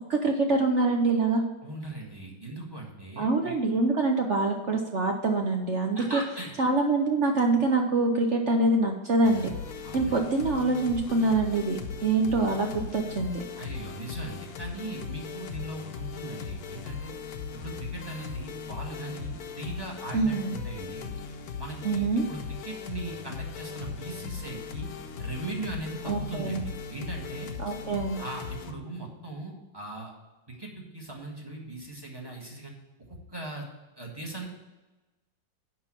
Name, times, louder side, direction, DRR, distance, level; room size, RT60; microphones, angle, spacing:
voice 1, 0.1-1.4 3.2-6.2 6.6-9.5 9.9-13.4 20.1-20.5 21.8-22.2 26.0-26.6 27.6-28.2, right 3 dB, 60° right, 3 dB, 0.8 m, -25 dB
voice 2, 1.6-3.6 5.9-6.6 9.8-10.2 13.6-17.1 17.5-21.1 21.6-24.9 25.2-27.5 28.2-30.1 30.5-32.7 33.1-33.7 34.0-34.6, right 2 dB, 15° right, -1 dB, 1.4 m, -39 dB
sound 1, 9.2-28.7, left 6 dB, 60° left, 1.1 m, -38 dB
10.5 x 3.9 x 7.4 m, 1.1 s
omnidirectional pair, 2.0 m